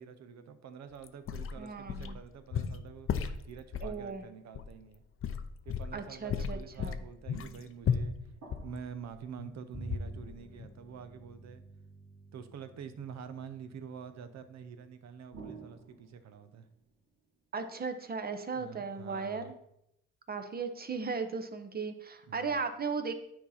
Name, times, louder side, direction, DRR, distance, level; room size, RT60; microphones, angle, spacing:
voice 1, 0.0-3.1 3.5-5.0 5.6-11.6 12.3-16.7 18.5-19.5 22.3-22.7, right 7 dB, 60° right, 10 dB, 0.8 m, -47 dB
sound 1, 1.0-2.2 2.5-4.0 4.5-4.7 5.2-6.0 6.3-9.5 9.9-10.3 10.6-10.7, left 7 dB, 45° left, 0.6 m, -34 dB
voice 2, 1.6-2.1 3.8-4.2 5.9-7.0 17.5-19.5 20.3-23.1, right 5 dB, 30° right, 8 dB, 0.9 m, -36 dB
sound 2, 7.3-10.1 15.3-18.8, right 4 dB, 85° right, 2.9 m, -55 dB
Bowed string instrument, 9.7-15.4, right 1 dB, 20° left, 1.0 m, -50 dB
9.9 x 4.2 x 4.2 m, 0.79 s
cardioid pair, 90°, 30 cm